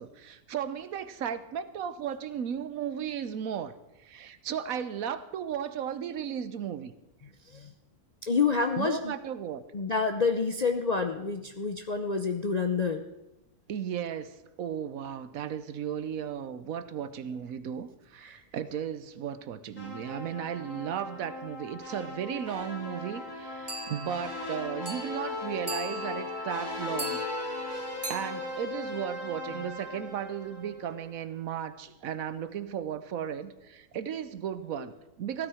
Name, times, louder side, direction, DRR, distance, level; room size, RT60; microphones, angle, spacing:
voice 1, 0.0-3.7 4.0-6.9 8.8-9.6 13.7-27.8 28.1-35.5, right 9 dB, 70° right, 13 dB, 1.1 m, -35 dB
voice 2, 8.2-9.1 9.7-13.0 18.2-18.4 34.8-34.9, left 5 dB, 45° left, 5 dB, 0.5 m, -28 dB
sound 1, 19.8-31.0, left 2 dB, 75° left, 4.7 m, -38 dB
sound 2, 23.7-29.6, right 2 dB, 20° right, 0.9 m, -42 dB
16.0 x 12.5 x 4.9 m, 0.95 s
omnidirectional pair, 1.6 m